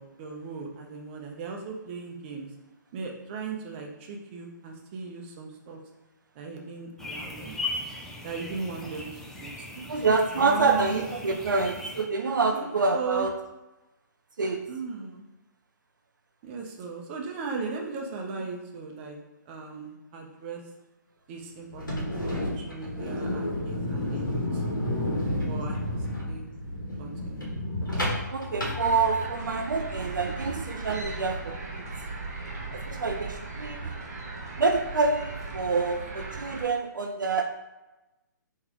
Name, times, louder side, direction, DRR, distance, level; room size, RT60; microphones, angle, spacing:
voice 1, 0.0-2.5 2.9-5.8 6.3-7.6 8.2-9.7 9.9-10.0 10.4-11.0 12.5-12.7 12.9-13.3 14.7-15.3 16.4-19.2 19.5-20.6 21.3-24.6 25.2-26.4 27.0-27.5, right 4 dB, 35° right, 1 dB, 0.7 m, -37 dB
sound 1, 7.0-12.0, left 2 dB, 5° left, 0.4 m, -38 dB
voice 2, 9.8-13.3 14.4-14.6 28.3-31.8 32.7-33.9 34.6-37.6, right 4 dB, 75° right, 3 dB, 0.4 m, -27 dB
sound 2, 21.7-29.5, left 1 dB, 85° left, 1.4 m, -31 dB
sound 3, 28.8-36.6, right 3 dB, 50° right, 1.1 m, -37 dB
3.4 x 3.1 x 3.6 m, 1.0 s
figure-of-eight pair, 130°, 10 cm